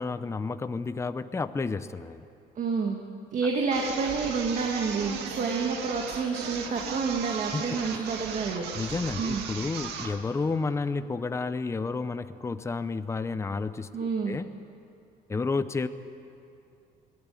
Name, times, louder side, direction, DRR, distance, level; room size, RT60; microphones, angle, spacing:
voice 1, 0.0-2.2 7.5-8.0 8.7-14.5 15.3-15.9, left 4 dB, 15° left, 12 dB, 0.7 m, -31 dB
voice 2, 2.6-3.0 3.3-8.7 9.2-9.4 13.9-14.4, right 5 dB, 45° right, 2 dB, 1.9 m, -29 dB
sound 1, 3.7-10.2, right 6 dB, 85° right, 2.1 m, -36 dB
21.0 x 16.0 x 9.2 m, 2.6 s
cardioid pair, 110°, 17 cm